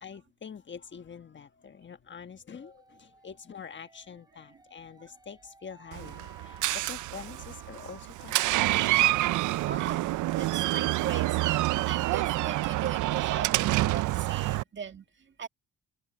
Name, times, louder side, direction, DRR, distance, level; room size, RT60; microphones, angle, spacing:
voice 1, 0.0-9.0, left 6 dB, 40° left, 1.3 m, -46 dB
sound 1, 2.5-12.2, right 2 dB, 15° right, 4.9 m, -57 dB
Door, 5.9-14.6, right 17 dB, 80° right, 0.5 m, -27 dB
voice 2, 9.6-15.1 15.4-15.5, right 7 dB, 40° right, 2.0 m, -39 dB
cardioid pair, 90°, 30 cm